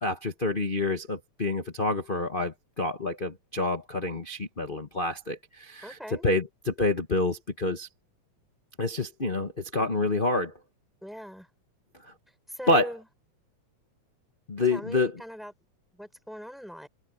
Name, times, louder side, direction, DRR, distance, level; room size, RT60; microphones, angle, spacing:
voice 1, 0.0-7.9 8.8-10.5 12.7-12.9 14.5-15.2, left 2 dB, 65° left, 0.5 m, -28 dB
voice 2, 5.8-6.2 11.0-11.5 12.5-13.0 14.7-15.5 15.9-16.9, equal, ahead, 6.9 m, -40 dB
omnidirectional pair, 3.5 m